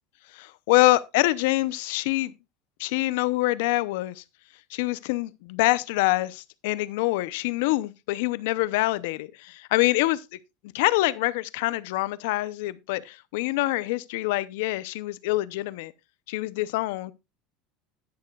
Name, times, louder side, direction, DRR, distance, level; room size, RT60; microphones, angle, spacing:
voice 1, 0.3-2.3 2.8-4.2 4.7-10.2 10.7-15.9 16.3-17.1, left 19 dB, 80° left, 0.6 m, -25 dB
11.5 x 10.5 x 2.4 m
cardioid pair, 150°, 0 cm